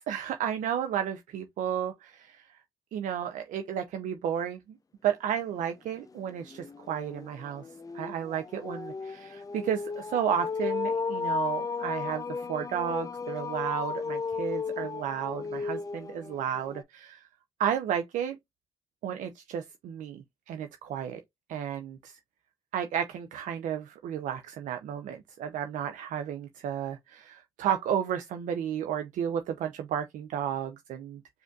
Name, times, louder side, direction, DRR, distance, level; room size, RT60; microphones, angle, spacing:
voice 1, 0.0-2.6 2.9-4.8 5.0-7.7 7.9-17.3 17.6-18.4 19.0-21.2 21.5-22.2 22.7-31.2, right 9 dB, 85° right, 0.4 m, -32 dB
sound 1, 5.6-5.7 6.1-16.8, left 5 dB, 30° left, 0.4 m, -34 dB
4.9 x 2.5 x 2.3 m
supercardioid pair, 50°, 13 cm